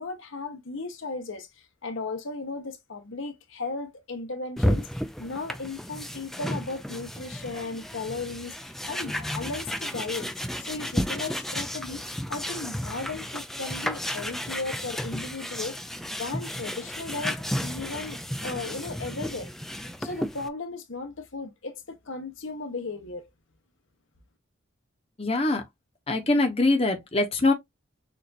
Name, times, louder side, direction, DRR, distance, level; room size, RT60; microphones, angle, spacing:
voice 1, 0.0-1.5 1.8-4.9 5.2-8.6 8.9-10.3 10.6-12.0 12.3-15.8 16.2-19.5 20.0-23.2, left 3 dB, 80° left, 1.0 m, -36 dB
sound 1, 4.6-20.5, equal, ahead, 0.3 m, -33 dB
voice 2, 25.2-25.6 26.1-27.5, left 2 dB, 30° left, 0.9 m, -23 dB
6.6 x 2.6 x 2.6 m
head